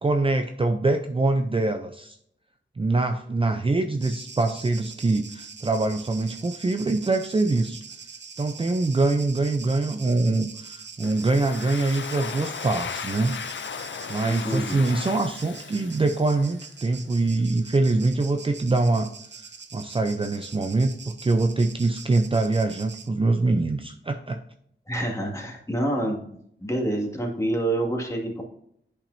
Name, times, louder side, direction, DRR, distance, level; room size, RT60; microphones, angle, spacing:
voice 1, 0.0-2.2 2.8-7.8 8.4-13.8 14.1-19.1 19.4-19.5 19.7-24.4, right 2 dB, 25° right, 6 dB, 0.5 m, -24 dB
sound 1, 4.0-23.1, right 5 dB, 65° right, 0.8 m, -43 dB
Domestic sounds home sounds, 11.0-16.7, left 7 dB, 70° left, 0.5 m, -36 dB
voice 2, 14.2-14.8 24.9-26.2 26.6-28.4, right 1 dB, 15° left, -1 dB, 2.1 m, -27 dB
10.5 x 5.7 x 2.7 m, 0.70 s
wide cardioid pair, 120°, 20 cm